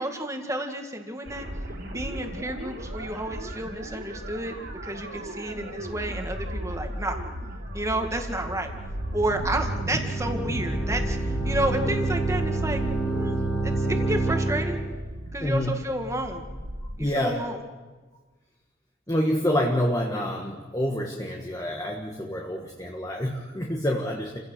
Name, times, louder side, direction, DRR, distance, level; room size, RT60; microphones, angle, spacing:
voice 1, 0.0-1.5 1.9-7.3 7.7-8.7 9.1-13.4 13.6-14.8 15.3-16.4 17.0-17.6, right 1 dB, 15° right, 4 dB, 1.9 m, -31 dB
sound 1, 1.3-17.0, equal, 55° right, 3.6 m, -35 dB
sound 2, 8.1-14.9, right 2 dB, 70° left, 2.8 m, -29 dB
voice 2, 13.2-13.5 15.4-15.8 17.0-17.5 19.1-24.4, equal, 15° left, 1 dB, 1.4 m, -27 dB
29.5 x 16.0 x 6.5 m, 1.3 s
head